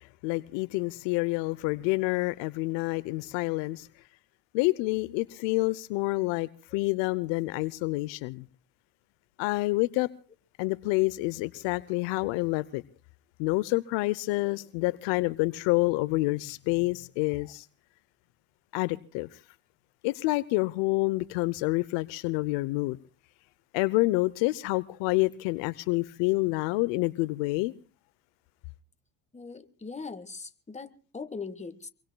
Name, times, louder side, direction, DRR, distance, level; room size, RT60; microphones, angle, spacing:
voice 1, 0.2-3.9 4.5-8.5 9.4-10.1 10.6-12.8 13.4-17.7 18.7-19.3 20.0-23.0 23.7-27.7, left 22 dB, 65° left, 0.7 m, -28 dB
voice 2, 29.3-31.9, left 4 dB, 15° left, 1.5 m, -40 dB
26.0 x 23.0 x 2.2 m
hypercardioid pair, 75°, 47 cm